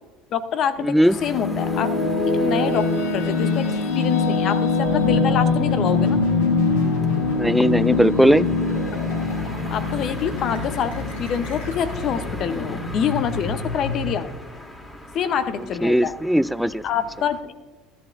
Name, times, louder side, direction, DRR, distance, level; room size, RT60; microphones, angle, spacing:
voice 1, 0.3-1.9 2.2-2.9 3.1-6.2 9.7-14.3 15.1-16.1 16.8-17.4, left 8 dB, 50° left, 12 dB, 0.9 m, -26 dB
sound 1, 0.8-12.1, left 4 dB, 70° left, 1.3 m, -23 dB
voice 2, 0.8-1.2 7.3-8.5 15.8-16.8, equal, ahead, 17 dB, 0.3 m, -18 dB
sound 2, 1.1-17.4, left 1 dB, 15° left, 1.9 m, -40 dB
sound 3, 4.8-14.1, left 2 dB, 90° left, 3.3 m, -31 dB
13.5 x 11.5 x 2.6 m, 1.3 s
hypercardioid pair, 75°, 0 cm